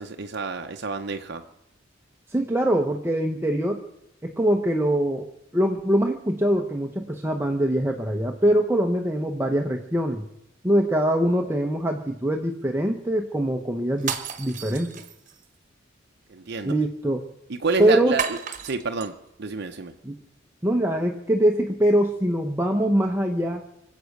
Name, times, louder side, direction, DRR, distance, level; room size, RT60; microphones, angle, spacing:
voice 1, 0.0-1.4 16.3-16.7 17.5-18.4 18.6-19.9, right 4 dB, 60° right, 5 dB, 0.8 m, -29 dB
voice 2, 2.3-3.8 4.2-5.3 5.5-10.2 10.6-14.9 16.6-17.2 17.8-18.1 20.1-20.2 20.6-23.6, right 1 dB, 10° right, 3 dB, 0.8 m, -23 dB
sound 1, 14.0-15.5 18.2-19.1, right 7 dB, 40° right, 1.2 m, -32 dB
24.5 x 8.3 x 6.6 m, 0.82 s
head